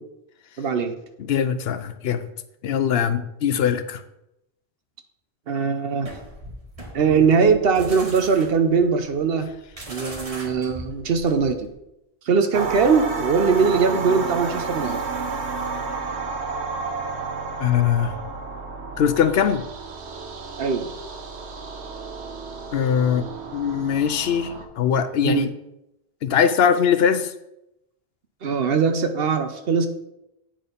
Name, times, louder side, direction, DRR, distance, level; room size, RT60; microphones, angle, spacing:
voice 1, 0.6-0.9 5.5-6.1 6.9-9.5 9.9-11.7 12.3-15.0 20.6-20.9 25.2-25.5 28.4-29.9, right 5 dB, 65° right, 8 dB, 0.9 m, -21 dB
voice 2, 1.3-2.2 2.6-4.0 17.6-18.2 19.0-19.6 22.7-25.5 26.2-27.3, left 8 dB, 70° left, 11 dB, 0.8 m, -21 dB
sound 1, 6.0-11.7, right 1 dB, 35° right, 1.4 m, -39 dB
sound 2, 12.5-24.6, right 4 dB, 80° right, 1.2 m, -31 dB
8.9 x 4.3 x 5.1 m, 0.87 s
omnidirectional pair, 1.1 m